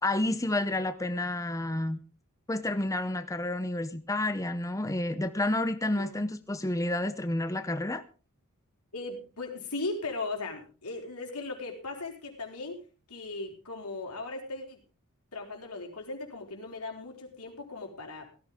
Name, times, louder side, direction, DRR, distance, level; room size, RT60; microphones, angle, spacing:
voice 1, 0.0-2.0 2.5-8.0, left 1 dB, 15° left, 10 dB, 0.7 m, -30 dB
voice 2, 8.9-12.8 13.1-14.8 15.3-18.3, left 3 dB, 85° left, 2 dB, 4.6 m, -38 dB
17.0 x 14.5 x 3.6 m, 0.35 s
head